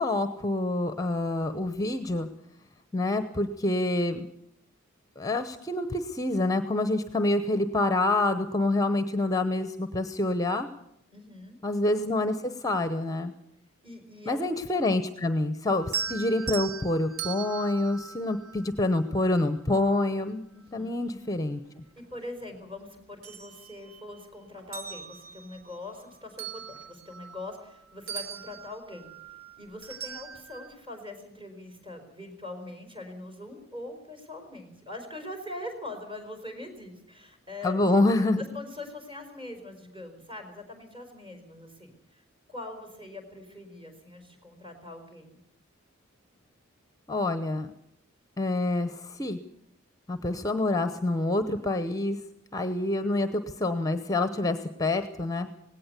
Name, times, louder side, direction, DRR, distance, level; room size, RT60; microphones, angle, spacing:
voice 1, 0.0-2.3 2.9-4.3 5.2-10.7 11.6-13.3 14.3-21.6 37.6-38.4 47.1-47.7 48.4-49.4 50.1-52.2 52.5-55.5, left 2 dB, 15° left, 10 dB, 0.9 m, -27 dB
voice 2, 11.1-11.6 13.8-14.4 16.0-16.2 20.5-21.0 22.1-29.1 29.6-37.9 38.5-42.2 42.5-45.4, left 2 dB, 25° right, 5 dB, 5.0 m, -42 dB
sound 1, 15.8-19.1 20.8-20.9 21.4-22.6 23.0-24.2 24.6-27.8 28.1-30.7, right 7 dB, 85° right, 1.4 m, -40 dB
18.5 x 17.5 x 8.2 m, 0.76 s
head